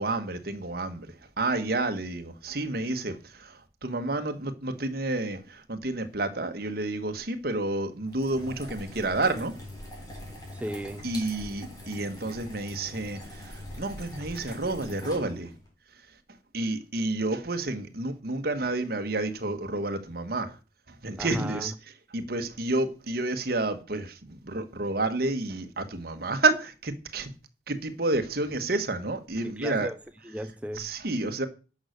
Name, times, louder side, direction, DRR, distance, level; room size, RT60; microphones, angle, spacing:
voice 1, 0.0-9.6 11.0-15.5 16.5-20.6 20.9-21.7 22.1-27.3 27.7-29.9 30.7-31.5, right 2 dB, 55° right, 1.4 m, -30 dB
sound 1, 8.1-15.7, left 1 dB, 20° left, 3.7 m, -43 dB
voice 2, 10.5-11.1 21.2-21.7 29.4-30.0 30.2-30.9, equal, 5° right, 0.5 m, -36 dB
11.0 x 6.3 x 6.6 m
head